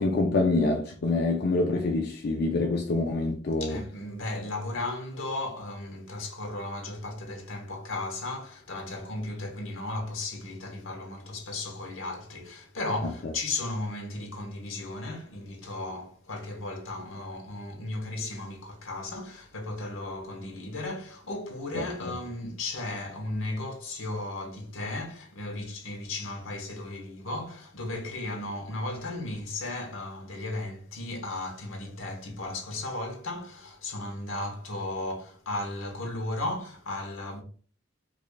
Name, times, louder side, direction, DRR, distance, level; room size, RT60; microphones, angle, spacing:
voice 1, 0.0-3.8 21.7-21.8, left 2 dB, 55° left, 0.4 m, -26 dB
voice 2, 3.6-37.4, left 2 dB, 90° left, 1.0 m, -35 dB
4.9 x 2.4 x 2.3 m
head